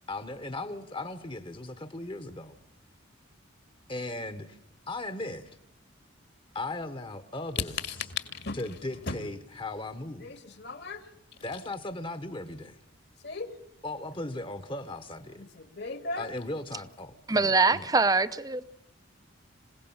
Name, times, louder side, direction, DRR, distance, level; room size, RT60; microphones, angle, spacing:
voice 1, 0.1-2.6 3.9-4.6 4.9-5.6 6.5-7.7 8.6-10.3 11.4-12.8 13.8-15.5 16.2-17.9, left 2 dB, 25° left, 11 dB, 1.2 m, -37 dB
voice 2, 7.7-8.6 9.0-9.2 10.2-11.1 13.2-13.6 15.4-16.3, left 4 dB, 55° left, 9 dB, 2.2 m, -37 dB
voice 3, 17.3-18.6, right 3 dB, 20° right, 13 dB, 0.8 m, -23 dB
27.0 x 17.5 x 7.2 m, 0.73 s
head